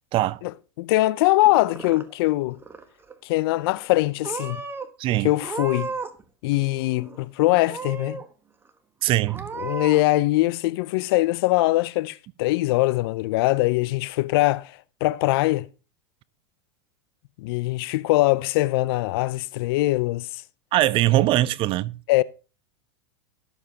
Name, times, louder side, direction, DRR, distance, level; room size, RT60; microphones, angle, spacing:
voice 1, 0.8-2.6 3.2-4.6 5.2-5.9 6.4-8.2 9.6-14.7 15.0-15.7 17.4-20.3 22.1-22.2, left 18 dB, 60° left, 0.5 m, -22 dB
Purr / Meow, 1.4-2.3 2.6-3.2 3.8-4.9 5.4-6.2 6.5-7.2 7.7-8.3 8.7-8.8 9.3-10.0, right 4 dB, 15° right, 1.1 m, -34 dB
voice 2, 5.0-5.3 9.0-9.5 20.7-22.0, right 15 dB, 40° right, 0.6 m, -21 dB
17.0 x 7.3 x 2.8 m
hypercardioid pair, 110°, 14 cm